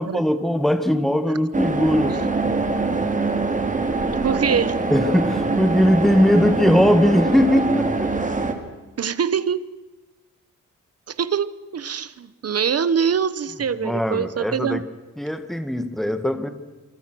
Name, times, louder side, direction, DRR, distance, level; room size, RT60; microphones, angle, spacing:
voice 1, 0.0-2.5 4.9-8.3 13.8-14.8 15.2-16.5, equal, ahead, 8 dB, 1.9 m, -20 dB
sound 1, 1.5-8.5, right 3 dB, 25° right, 2.7 m, -23 dB
voice 2, 4.1-4.8 9.0-9.6 11.1-14.8, right 7 dB, 50° right, 16 dB, 1.0 m, -24 dB
27.0 x 25.5 x 6.2 m, 1.2 s
wide cardioid pair, 165°, 32 cm